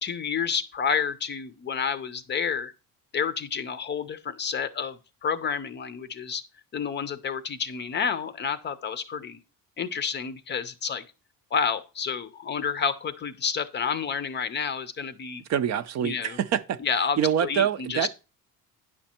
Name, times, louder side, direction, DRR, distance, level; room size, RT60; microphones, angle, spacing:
voice 1, 0.0-2.7 3.1-6.4 6.7-9.4 9.8-11.0 11.5-15.4 16.0-16.4 16.8-18.1, left 6 dB, 30° left, 0.5 m, -29 dB
voice 2, 15.5-16.8 17.2-18.1, right 9 dB, 45° right, 0.5 m, -25 dB
10.0 x 6.2 x 4.3 m
cardioid pair, 180°, 37 cm